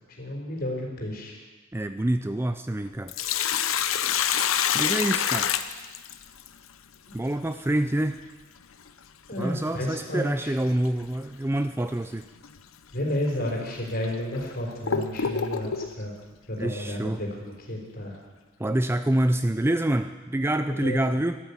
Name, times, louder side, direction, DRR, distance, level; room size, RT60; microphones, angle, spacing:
voice 1, 0.2-1.4 7.1-7.2 9.3-10.5 12.9-16.1 16.5-18.2 20.7-21.2, left 1 dB, 50° left, -1 dB, 4.3 m, -31 dB
voice 2, 1.7-3.1 4.7-5.5 7.1-8.2 9.4-12.2 16.6-17.2 18.6-21.4, right 1 dB, 10° right, 10 dB, 0.4 m, -26 dB
Sink (filling or washing), 2.9-6.5 8.9-9.0 10.8-11.1 11.6-11.7 12.4-12.6 13.3-13.4 14.0-15.9, left 8 dB, 85° left, 0.8 m, -26 dB
13.0 x 12.0 x 8.6 m, 1.3 s
head